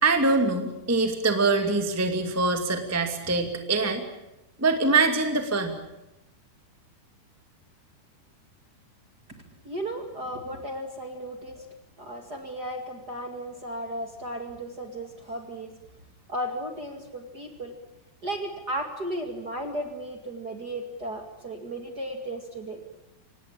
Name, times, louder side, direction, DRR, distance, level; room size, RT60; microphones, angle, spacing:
voice 1, 0.0-4.0 4.6-5.7, right 3 dB, 5° right, 5 dB, 1.4 m, -24 dB
voice 2, 9.6-11.6 12.0-15.7 16.3-17.7 18.2-22.8, right 1 dB, 35° right, 4 dB, 2.0 m, -35 dB
25.5 x 19.5 x 8.7 m, 0.90 s
omnidirectional pair, 4.6 m